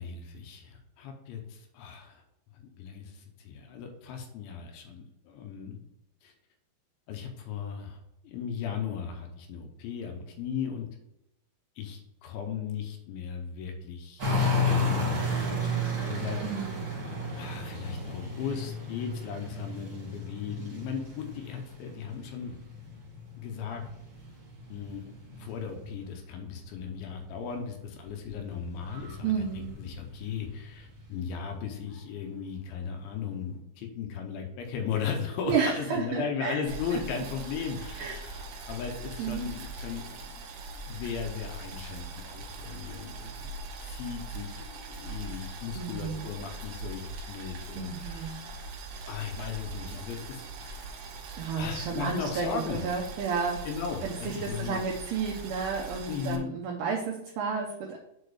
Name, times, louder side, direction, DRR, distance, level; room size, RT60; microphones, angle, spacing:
voice 1, 0.0-2.2 2.5-5.8 6.2-6.3 7.1-8.0 8.2-10.9 11.8-14.2 14.6-16.4 17.3-22.6 23.4-23.8 24.7-25.1 25.4-40.5 40.7-43.5 43.8-48.5 49.0-50.9 51.6-52.8 53.6-54.9 56.1-56.5, left 6 dB, 75° left, 3 dB, 3.0 m, -37 dB
sound 1, 14.2-26.2 26.5-31.4 31.9-32.0, left 2 dB, 40° right, 2.0 m, -33 dB
voice 2, 16.4-16.8 29.2-29.8 35.5-36.6 36.9-37.0 38.0-38.3 39.2-39.5 45.8-46.3 47.7-48.5 51.3-53.7 54.0-58.0, right 6 dB, 90° right, -1 dB, 2.3 m, -32 dB
Boiling, 36.7-56.4, right 3 dB, 70° right, 2.5 m, -41 dB
7.7 x 4.5 x 4.8 m, 0.84 s
omnidirectional pair, 5.8 m